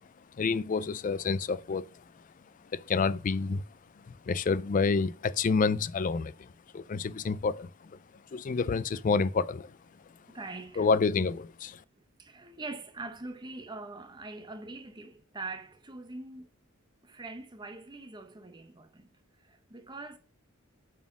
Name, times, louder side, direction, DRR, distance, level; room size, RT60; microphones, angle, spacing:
voice 1, 0.4-2.0 2.7-3.6 4.1-8.0 8.3-9.8 10.8-11.8, left 4 dB, 40° left, 0.3 m, -29 dB
voice 2, 10.3-10.9 12.2-16.5 17.0-19.1 19.4-20.2, right 3 dB, 20° right, 0.7 m, -43 dB
7.1 x 4.3 x 5.9 m
head